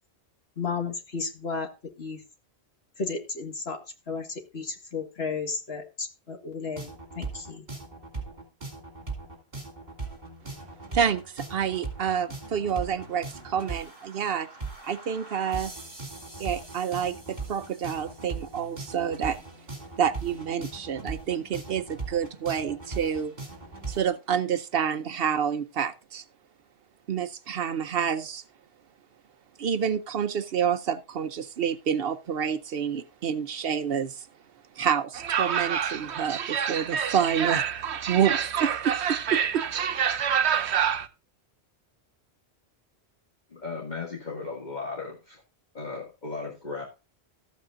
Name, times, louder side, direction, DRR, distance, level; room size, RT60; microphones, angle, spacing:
voice 1, 0.6-1.7 2.0-2.2 3.0-3.8 4.1-6.9 7.2-7.6, left 4 dB, 75° left, 2.1 m, -33 dB
sound 1, 6.8-24.1, right 3 dB, 40° right, 3.0 m, -39 dB
voice 2, 10.9-14.5 14.8-15.7 16.4-19.4 20.0-23.3 23.9-26.2 27.1-28.4 29.6-34.3 34.8-37.6 38.1-39.6, right 8 dB, 65° right, 0.9 m, -28 dB
sound 2, 35.1-41.1, right 8 dB, 85° right, 1.1 m, -27 dB
voice 3, 43.5-45.4 45.7-46.8, left 4 dB, 45° left, 2.2 m, -36 dB
13.5 x 8.3 x 2.5 m
omnidirectional pair, 1.1 m